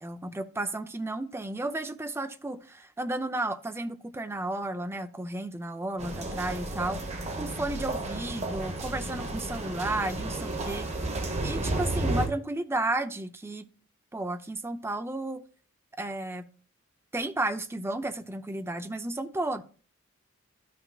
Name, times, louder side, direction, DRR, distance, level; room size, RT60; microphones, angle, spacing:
voice 1, 0.0-7.0 7.4-10.9 11.4-13.6 14.1-15.4 16.0-16.5 17.1-19.6, right 2 dB, 10° right, 9 dB, 0.5 m, -33 dB
sound 1, 6.0-12.3, right 2 dB, 30° right, 1.1 m, -32 dB
13.0 x 5.9 x 2.3 m, 0.40 s
head